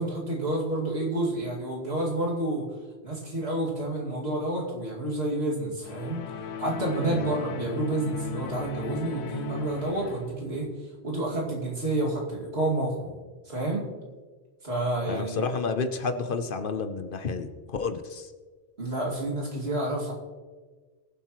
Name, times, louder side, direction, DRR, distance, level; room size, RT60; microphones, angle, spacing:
voice 1, 0.0-2.6 3.0-6.2 6.6-10.7 11.0-13.9 14.6-15.5 18.8-20.1, right 1 dB, 75° right, -3 dB, 2.7 m, -29 dB
sound 1, 5.8-10.5, left 5 dB, 85° left, 1.0 m, -37 dB
voice 2, 15.1-18.3, left 4 dB, 55° left, 8 dB, 1.0 m, -31 dB
22.0 x 7.9 x 3.1 m, 1.4 s
omnidirectional pair, 1.1 m